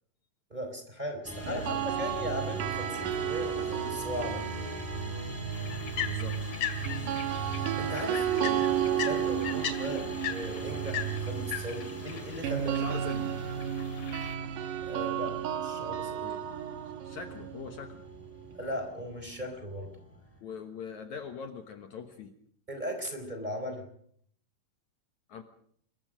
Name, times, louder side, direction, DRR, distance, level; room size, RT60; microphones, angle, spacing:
voice 1, 0.5-4.5 7.1-7.3 7.8-13.0 14.8-16.2 18.6-19.9 22.7-23.8, equal, 10° right, 4 dB, 3.8 m, -38 dB
sound 1, 1.2-20.4, right 3 dB, 5° left, 5.7 m, -40 dB
sound 2, 1.4-5.6 6.8-18.7, right 10 dB, 70° right, 2.6 m, -33 dB
voice 2, 1.5-1.9 6.1-6.5 6.9-7.2 12.6-13.3 16.2-16.4 17.0-18.0 20.4-22.3 25.3-25.4, left 6 dB, 60° left, 6 dB, 2.4 m, -42 dB
sound 3, 5.5-14.4, left 9 dB, 45° left, 3.2 m, -39 dB
26.0 x 22.5 x 5.1 m, 0.63 s
omnidirectional pair, 4.1 m